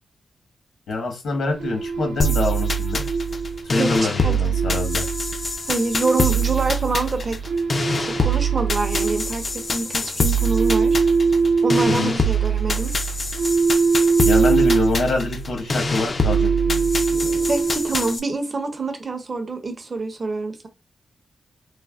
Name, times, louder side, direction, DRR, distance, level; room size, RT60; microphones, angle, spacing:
voice 1, 0.9-3.0 3.6-5.0 11.8-12.2 14.2-16.5, left 3 dB, 70° left, 1.1 m, -24 dB
sound 1, 1.5-18.2, right 4 dB, 90° right, 0.3 m, -24 dB
sound 2, 2.2-18.2, right 2 dB, 35° left, 0.3 m, -24 dB
voice 2, 3.8-4.6 5.7-7.4 8.0-9.4 9.7-11.0 11.6-12.9 17.5-20.7, right 3 dB, 30° right, 0.5 m, -26 dB
3.2 x 2.0 x 2.3 m
wide cardioid pair, 175°, 0 cm